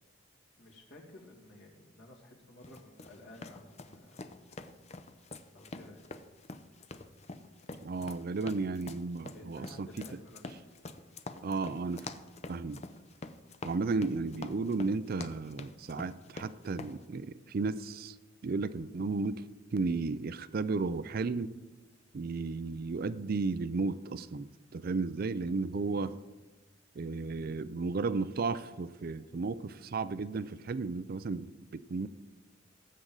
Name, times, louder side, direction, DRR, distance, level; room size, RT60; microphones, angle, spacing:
voice 1, 0.6-4.3 5.5-6.1 9.3-10.6 25.9-26.2, left 1 dB, 65° left, -2 dB, 2.6 m, -54 dB
sound 1, 2.6-17.0, left 3 dB, 35° left, 0.6 m, -46 dB
voice 2, 7.8-9.9 11.4-12.1 12.5-12.8 13.6-18.1 18.4-19.4 19.7-21.5 22.1-26.2 27.0-32.1, right 4 dB, 50° right, 15 dB, 0.4 m, -34 dB
19.0 x 7.7 x 4.0 m, 1.2 s
head